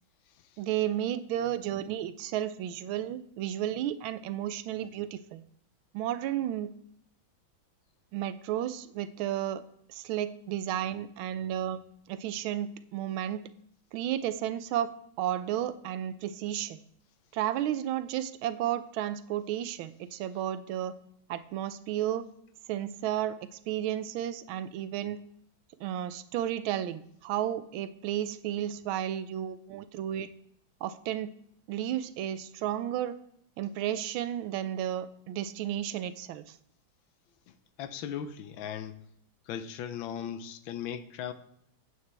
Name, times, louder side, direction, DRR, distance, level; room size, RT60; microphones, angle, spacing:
voice 1, 0.6-5.4 5.9-6.7 8.1-9.6 9.9-11.8 12.1-13.4 13.9-14.9 15.2-16.8 17.3-20.9 21.3-22.3 22.7-23.4 23.7-25.2 25.8-30.3 30.8-31.3 31.7-33.2 33.6-36.6, right 11 dB, 90° right, 1.4 m, -32 dB
voice 2, 37.8-39.1 39.5-41.3, left 9 dB, 80° left, 1.4 m, -37 dB
9.6 x 8.1 x 3.3 m
omnidirectional pair, 2.2 m